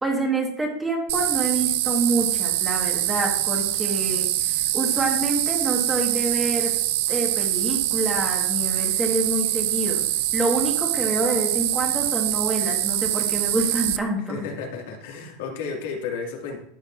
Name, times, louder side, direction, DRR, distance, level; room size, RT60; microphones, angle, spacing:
voice 1, 0.0-6.7 7.1-10.0 10.3-14.4, right 2 dB, 10° right, 0 dB, 1.4 m, -27 dB
sound 1, 1.1-14.0, right 15 dB, 60° right, 0.4 m, -24 dB
voice 2, 14.2-16.6, left 5 dB, 80° left, 1 dB, 1.9 m, -32 dB
12.0 x 7.7 x 2.5 m, 0.68 s
supercardioid pair, 180°, 0 cm